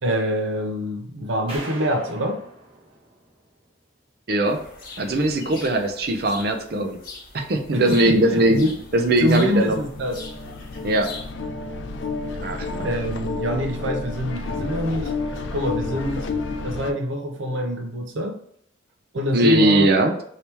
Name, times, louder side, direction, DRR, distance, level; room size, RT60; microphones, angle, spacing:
voice 1, 0.0-2.4 7.7-8.7 9.2-10.2 12.8-15.1 15.5-16.3 16.6-18.4 19.1-19.9, equal, 85° right, 4 dB, 0.7 m, -25 dB
sound 1, 1.5-3.8, right 2 dB, 30° right, 1.3 m, -40 dB
voice 2, 4.3-4.6 5.0-7.0 7.3-8.6 8.9-9.8 10.8-11.1 12.4-12.9 19.3-20.1, right 1 dB, 55° right, 5 dB, 0.5 m, -20 dB
sound 2, 4.5-11.3, left 3 dB, 50° left, 0.9 m, -42 dB
Thailand - Cymbals & Drums, 7.7-16.9, left 3 dB, 75° left, 0.4 m, -31 dB
3.0 x 2.9 x 3.3 m, 0.66 s
head